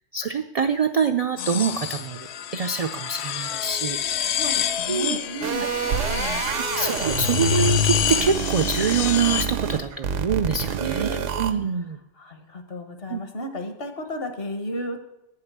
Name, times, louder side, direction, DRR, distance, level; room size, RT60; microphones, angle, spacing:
voice 1, 0.1-2.3 2.5-4.3 4.9-5.2 6.5-12.0 13.1-13.2, right 6 dB, 70° right, 7 dB, 0.3 m, -25 dB
sound 1, 1.4-9.4, left 10 dB, 70° left, 0.8 m, -27 dB
voice 2, 4.3-6.5 10.8-11.3 12.2-15.1, equal, 55° left, 6 dB, 1.4 m, -33 dB
sound 2, 5.4-11.5, right 7 dB, 90° right, 1.1 m, -28 dB
9.1 x 5.7 x 7.9 m, 0.88 s
omnidirectional pair, 1.2 m